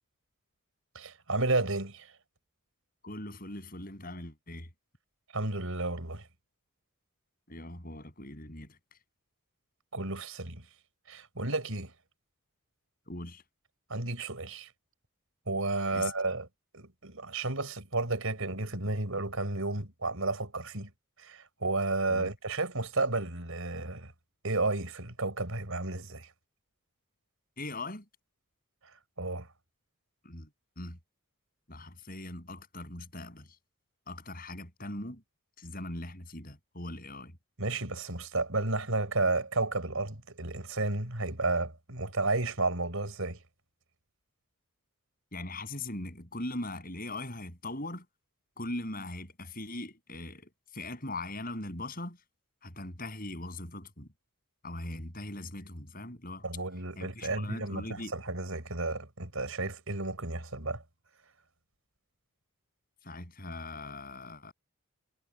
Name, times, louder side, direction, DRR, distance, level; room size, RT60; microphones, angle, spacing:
voice 1, 0.9-2.1 5.3-6.2 9.9-10.6 11.1-11.9 13.9-14.7 15.5-16.5 16.7-20.9 21.2-24.1 24.4-26.3 29.2-29.5 37.6-43.4 56.4-60.8, right 2 dB, 75° right, 4.5 m, -32 dB
voice 2, 3.0-4.7 7.5-8.8 13.1-13.4 15.9-16.1 22.1-22.3 27.6-28.1 30.2-30.5 30.8-31.0 31.7-33.6 34.1-35.2 35.6-37.4 45.3-48.1 48.6-52.2 52.6-54.1 54.6-56.5 57.0-58.1 63.0-64.5, left 2 dB, 40° left, 7.0 m, -40 dB
head